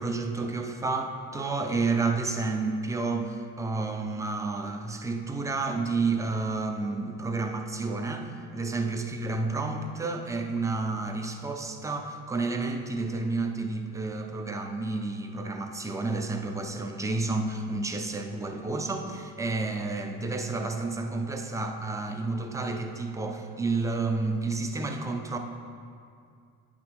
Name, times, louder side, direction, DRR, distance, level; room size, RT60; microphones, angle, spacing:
voice 1, 0.0-25.4, right 3 dB, 10° right, 4 dB, 0.4 m, -30 dB
9.4 x 6.0 x 6.2 m, 2.3 s
cardioid pair, 170°, 38 cm